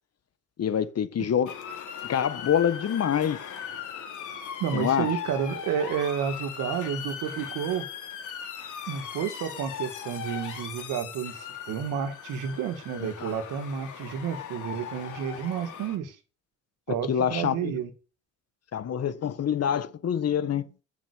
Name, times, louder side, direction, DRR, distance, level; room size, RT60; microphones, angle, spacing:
voice 1, 0.6-1.5 2.1-3.4 4.7-5.1 13.0-13.3 17.1-17.7 18.7-20.6, left 9 dB, 55° left, 1.5 m, -26 dB
Motor vehicle (road) / Siren, 1.5-16.0, left 8 dB, 75° left, 3.9 m, -38 dB
voice 2, 4.6-7.9 8.9-16.2 16.9-17.9, right 8 dB, 90° right, 2.4 m, -31 dB
8.8 x 7.4 x 8.4 m
cardioid pair, 90°, 30 cm